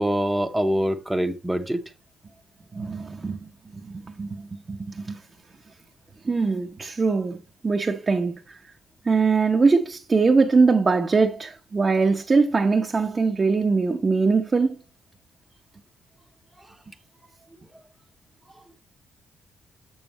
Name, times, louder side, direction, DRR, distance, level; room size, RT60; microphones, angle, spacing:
voice 1, 0.0-1.8, equal, 5° right, 0.9 m, -24 dB
voice 2, 2.7-3.4 3.8-5.2 6.2-7.4 7.6-8.3 9.1-14.8, right 4 dB, 30° right, 0.9 m, -22 dB
7.2 x 6.2 x 3.0 m
cardioid pair, 90°, 0 cm